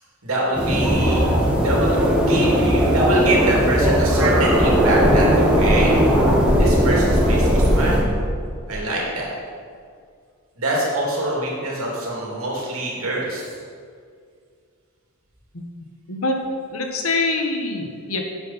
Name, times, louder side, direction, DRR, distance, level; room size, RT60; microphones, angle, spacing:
voice 1, 0.2-6.0 6.6-8.0 8.7-9.3 10.6-13.4, right 1 dB, 70° right, -4 dB, 2.8 m, -24 dB
sound 1, 0.5-8.0, equal, 5° right, 1.6 m, -17 dB
voice 2, 16.1-16.4 16.7-18.2, left 3 dB, 75° left, 2 dB, 1.4 m, -24 dB
11.5 x 7.8 x 4.3 m, 2.1 s
head